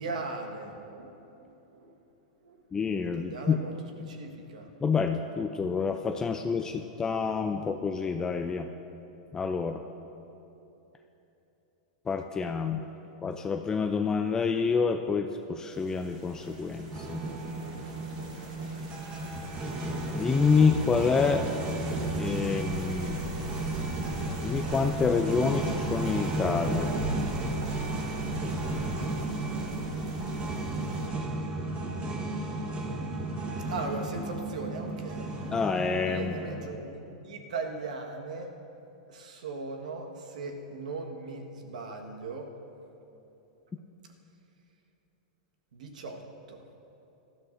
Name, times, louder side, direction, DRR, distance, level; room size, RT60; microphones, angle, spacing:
voice 1, 0.0-1.9 2.4-2.6 3.0-4.7 32.9-33.3 33.7-35.3 36.0-38.5 39.1-42.5 45.7-46.6, right 3 dB, 80° right, 3 dB, 1.4 m, -39 dB
voice 2, 2.7-3.6 4.8-8.7 9.3-9.8 12.1-12.8 13.2-17.2 20.1-21.5 22.2-23.2 24.4-27.0 35.5-36.4, left 5 dB, 15° left, 6 dB, 0.4 m, -28 dB
sound 1, 15.7-31.1, right 2 dB, 60° right, 3.0 m, -41 dB
sound 2, 16.9-36.7, right 2 dB, 30° right, 1.3 m, -33 dB
18.5 x 13.0 x 2.6 m, 3.0 s
hypercardioid pair, 125°, 4 cm